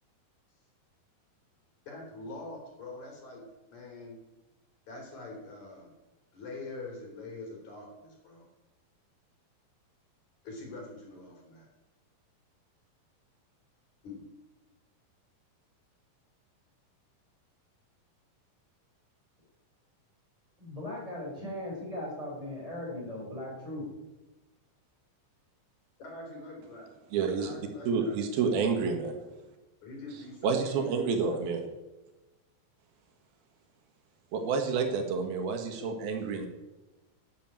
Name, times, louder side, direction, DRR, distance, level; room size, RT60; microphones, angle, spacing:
voice 1, 1.9-3.4 3.7-4.2 4.9-5.9 6.3-8.5 10.4-11.7 14.0-14.2 26.0-26.9 27.4-28.6 29.8-31.4, left 2 dB, 50° left, 0 dB, 4.9 m, -44 dB
voice 2, 20.6-23.9, left 1 dB, 10° right, -3 dB, 5.9 m, -38 dB
voice 3, 27.1-27.6 27.9-29.1 30.4-31.7 34.3-36.5, right 5 dB, 85° right, 5 dB, 3.7 m, -29 dB
12.0 x 9.8 x 8.9 m, 1.1 s
omnidirectional pair, 4.2 m